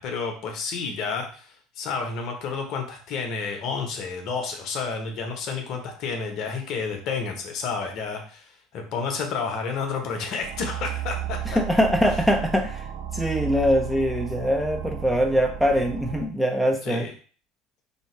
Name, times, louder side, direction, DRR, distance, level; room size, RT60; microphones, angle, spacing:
voice 1, 0.0-11.4 16.8-17.1, left 5 dB, 55° left, 3 dB, 0.9 m, -30 dB
sound 1, 10.4-16.3, right 10 dB, 60° right, 0.4 m, -33 dB
voice 2, 11.5-12.8 13.1-17.1, equal, ahead, 2 dB, 0.7 m, -23 dB
2.9 x 2.7 x 4.4 m, 0.42 s
hypercardioid pair, 75°, 0 cm